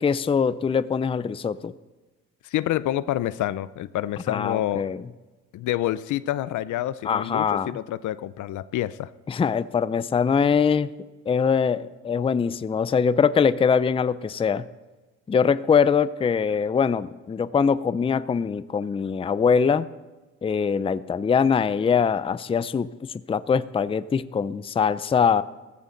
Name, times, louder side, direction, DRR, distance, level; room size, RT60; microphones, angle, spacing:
voice 1, 0.0-1.7 4.3-5.0 7.0-7.7 9.3-10.9 11.3-14.7 15.3-19.9 20.4-25.4, left 6 dB, 20° left, 16 dB, 0.4 m, -23 dB
voice 2, 2.4-4.9 5.5-9.1, left 13 dB, 75° left, 17 dB, 0.6 m, -28 dB
15.5 x 14.5 x 3.9 m, 1.2 s
cardioid pair, 90°, 30 cm